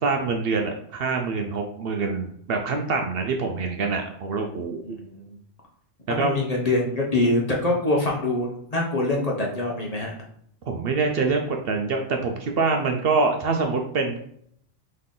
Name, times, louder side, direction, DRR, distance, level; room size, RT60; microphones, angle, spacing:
voice 1, 0.0-5.0 6.2-6.3 10.7-14.2, right 4 dB, 60° right, 3 dB, 0.7 m, -25 dB
voice 2, 4.8-5.4 6.1-10.1, left 2 dB, 35° left, -1 dB, 0.8 m, -24 dB
4.0 x 3.2 x 3.7 m, 0.67 s
omnidirectional pair, 1.2 m